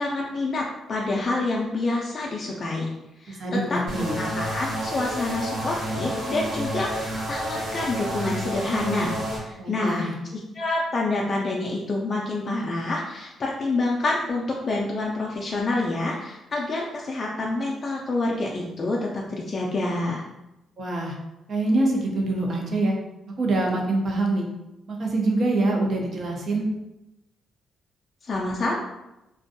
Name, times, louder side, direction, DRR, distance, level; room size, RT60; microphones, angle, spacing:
voice 1, 0.0-2.9 3.2-3.8 4.2-9.2 9.4-20.2 28.2-28.8, left 2 dB, 45° left, -2 dB, 0.3 m, -27 dB
voice 2, 3.3-4.2 9.6-10.2 20.8-21.2 21.5-23.0 23.4-24.5 24.9-26.7, right 2 dB, 55° right, 0 dB, 0.6 m, -25 dB
sound 1, 3.9-9.4, equal, 80° right, 1.2 m, -30 dB
2.5 x 2.2 x 2.6 m, 0.93 s
cardioid pair, 100°, 0 cm